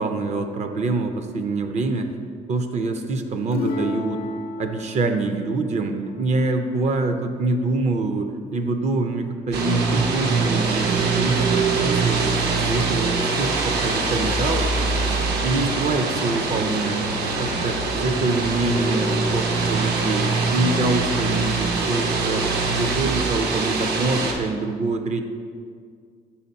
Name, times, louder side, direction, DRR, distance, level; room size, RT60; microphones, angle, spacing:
voice 1, 0.0-2.1 2.5-4.2 4.6-12.2 12.5-15.2 15.4-25.2, right 3 dB, 45° right, 7 dB, 0.5 m, -25 dB
sound 1, 3.5-7.1 9.7-10.1, left 3 dB, 70° left, 0.7 m, -33 dB
sound 2, 9.5-24.3, right 3 dB, 80° right, 0.8 m, -23 dB
5.6 x 5.0 x 4.1 m, 2.1 s
cardioid pair, 115°, 17 cm